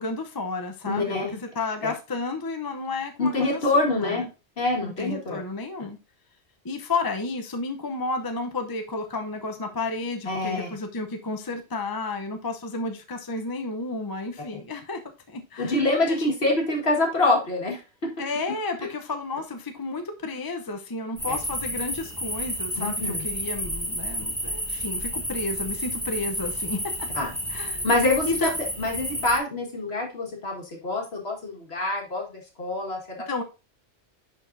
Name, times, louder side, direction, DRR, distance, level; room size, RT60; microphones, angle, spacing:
voice 1, 0.0-4.3 4.8-6.0 6.6-15.0 15.3-16.2 18.2-27.1 27.5-27.8 28.3-28.5 33.3-33.4, left 3 dB, 25° left, 5 dB, 0.6 m, -32 dB
voice 2, 0.8-1.3 1.8-1.9 3.2-4.3 4.6-5.4 10.3-10.7 15.6-17.8 21.3-21.4 22.8-23.2 27.2-27.3 27.8-28.5 28.8-33.2, left 2 dB, 60° left, 0 dB, 2.0 m, -25 dB
sound 1, 21.2-29.4, equal, ahead, 1.5 m, -31 dB
10.5 x 4.6 x 2.6 m, 0.29 s
omnidirectional pair, 1.2 m